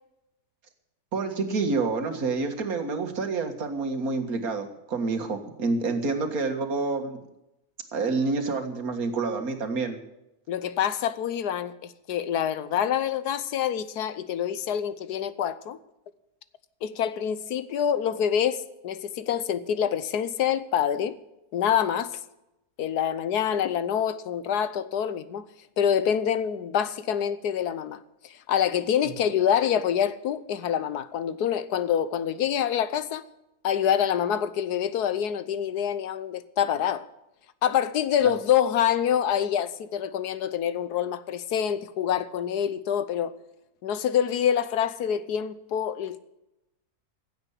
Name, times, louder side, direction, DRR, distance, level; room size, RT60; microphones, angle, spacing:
voice 1, 1.1-7.2 7.9-10.0, right 3 dB, 65° right, 2.2 m, -28 dB
voice 2, 10.5-15.8 16.8-21.2 21.5-22.2 22.8-25.4 25.8-28.0 28.2-33.2 33.6-37.1 37.6-43.3 43.8-46.2, left 9 dB, 85° left, 1.4 m, -26 dB
15.5 x 8.1 x 8.2 m
omnidirectional pair, 1.7 m